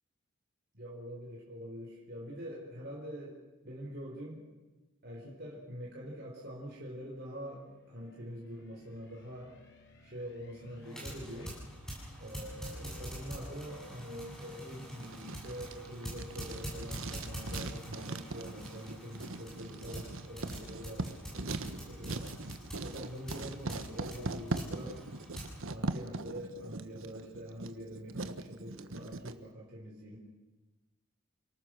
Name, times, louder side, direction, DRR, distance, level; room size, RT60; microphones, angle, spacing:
voice 1, 0.7-3.4 3.6-4.4 5.0-9.5 10.0-11.6 12.2-22.4 22.8-25.0 25.7-30.2, equal, 50° right, -3 dB, 4.3 m, -45 dB
sound 1, 6.6-11.5, equal, 55° left, 4.0 m, -58 dB
sound 2, 10.8-25.6, equal, 5° left, 7.8 m, -45 dB
Writing, 15.0-29.4, right 2 dB, 75° right, 1.3 m, -41 dB
28.5 x 19.0 x 6.4 m, 1.2 s
head